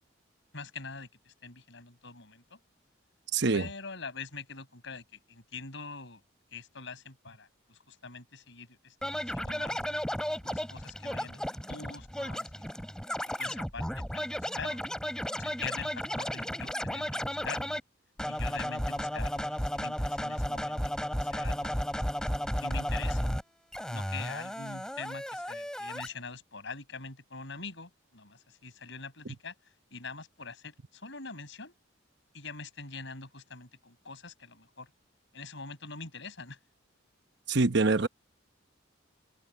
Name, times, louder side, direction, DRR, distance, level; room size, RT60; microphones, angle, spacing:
voice 1, 0.5-2.6 3.5-6.2 6.5-9.0 9.3-9.8 10.4-12.7 13.4-14.8 15.4-17.8 18.3-20.9 21.2-21.7 22.5-23.3 23.9-29.5 29.9-31.7 32.3-34.9 35.3-36.6, left 4 dB, 65° left, 5.8 m, -44 dB
voice 2, 3.3-3.7 37.5-38.1, right 3 dB, 60° right, 1.0 m, -25 dB
Scratching (performance technique), 9.0-17.8 18.2-23.4 23.7-26.1, equal, 5° left, 3.2 m, -34 dB
open air
head